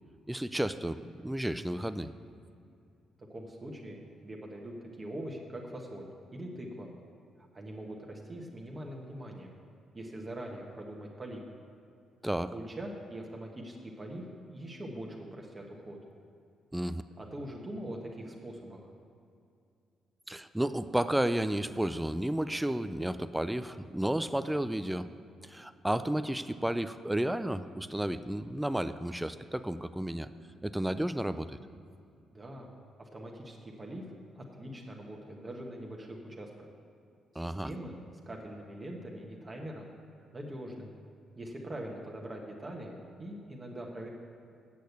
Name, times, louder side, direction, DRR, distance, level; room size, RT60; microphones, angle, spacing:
voice 1, 0.3-2.1 12.2-12.5 16.7-17.0 20.3-25.1 25.4-30.3 30.6-31.6 37.4-37.7, right 1 dB, 5° right, 12 dB, 0.4 m, -32 dB
voice 2, 3.2-6.9 7.5-9.6 9.9-11.4 12.5-16.0 17.2-18.9 32.3-32.7 33.0-34.0 34.3-36.7 37.3-38.0 38.3-39.9 40.3-40.9 41.4-42.9 43.2-44.1, right 1 dB, 25° right, -1 dB, 1.2 m, -42 dB
8.5 x 6.4 x 8.1 m, 2.4 s
cardioid pair, 90°, 0 cm